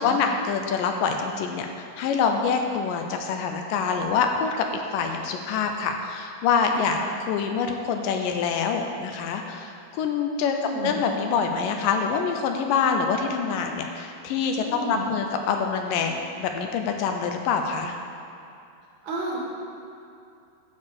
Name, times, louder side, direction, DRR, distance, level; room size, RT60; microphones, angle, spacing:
voice 1, 0.0-10.6 10.8-18.0, left 5 dB, 75° left, 4 dB, 2.2 m, -25 dB
voice 2, 6.8-7.2 10.5-11.0 14.6-15.1 19.0-19.4, right 2 dB, 55° right, -4 dB, 2.8 m, -33 dB
10.5 x 4.7 x 7.3 m, 2.6 s
omnidirectional pair, 4.1 m